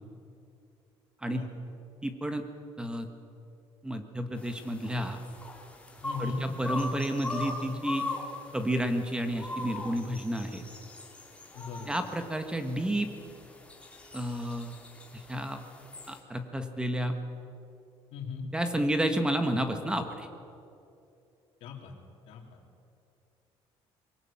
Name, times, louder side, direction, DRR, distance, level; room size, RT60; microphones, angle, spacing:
voice 1, 2.0-2.4 2.8-3.1 3.8-5.2 6.2-8.0 8.5-10.6 11.9-13.1 14.1-14.8 15.1-15.6 16.1-17.2 18.5-20.3, right 1 dB, 10° right, 7 dB, 1.5 m, -31 dB
sound 1, 4.4-16.2, left 2 dB, 10° left, 3.2 m, -41 dB
voice 2, 6.0-6.4 11.5-11.9 18.1-18.5 21.6-21.9 22.3-22.4, left 5 dB, 75° left, 3 dB, 3.4 m, -37 dB
22.5 x 19.0 x 8.8 m, 2.7 s
cardioid pair, 140°, 10 cm